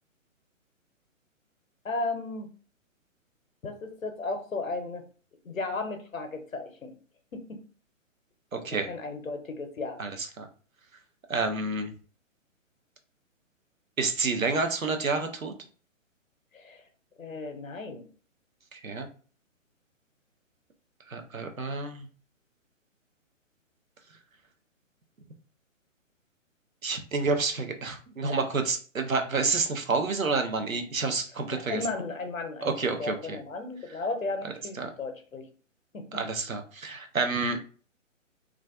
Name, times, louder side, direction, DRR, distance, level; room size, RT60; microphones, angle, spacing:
voice 1, 1.8-2.5 3.6-5.0 5.4-6.9 7.3-7.6 8.7-10.0 16.5-16.8 17.2-18.0 31.5-32.7 33.0-35.5 35.9-36.1, left 3 dB, 85° left, 6 dB, 0.7 m, -35 dB
voice 2, 8.5-8.9 10.0-10.5 11.3-11.9 14.0-15.5 18.7-19.1 21.1-22.1 26.8-31.8 32.6-33.4 34.8-34.9 36.1-37.6, right 4 dB, 90° right, 5 dB, 0.6 m, -29 dB
2.4 x 2.2 x 2.3 m, 0.40 s
figure-of-eight pair, 130°, 40 cm